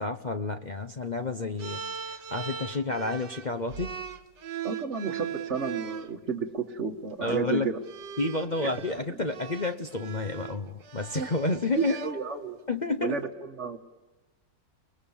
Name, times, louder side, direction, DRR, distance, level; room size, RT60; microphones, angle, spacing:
voice 1, 0.0-1.8 2.1-3.9 7.2-7.7 8.2-11.9 12.7-13.2, left 2 dB, 35° left, 5 dB, 0.7 m, -30 dB
sound 1, 1.6-6.1 7.1-7.3 7.8-12.7, right 7 dB, 70° right, 1.8 m, -39 dB
voice 2, 4.6-7.8 8.6-8.7 9.1-9.2 11.1-11.3 11.8-12.6 13.0-13.3 13.6-13.8, right 5 dB, 40° right, -2 dB, 1.6 m, -31 dB
30.0 x 20.5 x 7.2 m, 1.2 s
omnidirectional pair, 1.9 m